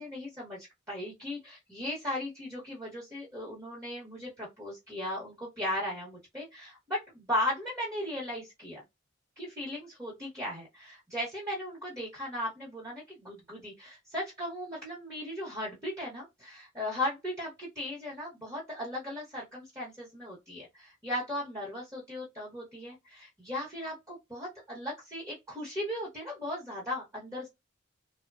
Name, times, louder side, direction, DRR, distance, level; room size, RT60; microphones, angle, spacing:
voice 1, 0.0-8.8 9.4-27.5, left 1 dB, 15° right, 0.9 m, -37 dB
3.0 x 2.1 x 2.3 m
head